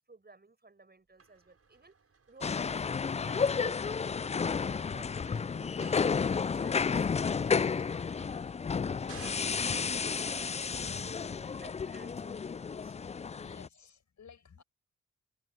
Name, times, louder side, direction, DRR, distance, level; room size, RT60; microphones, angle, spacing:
voice 1, 0.0-2.0 2.3-8.5 8.8-9.8 10.8-13.0, right 3 dB, 30° right, 6.1 m, -56 dB
sound 1, 1.2-11.3, right 5 dB, 45° right, 6.8 m, -59 dB
sound 2, 2.4-13.7, left 5 dB, 20° left, 0.4 m, -32 dB
voice 2, 13.3-14.6, left 6 dB, 60° left, 5.6 m, -55 dB
supercardioid pair, 40°, 32 cm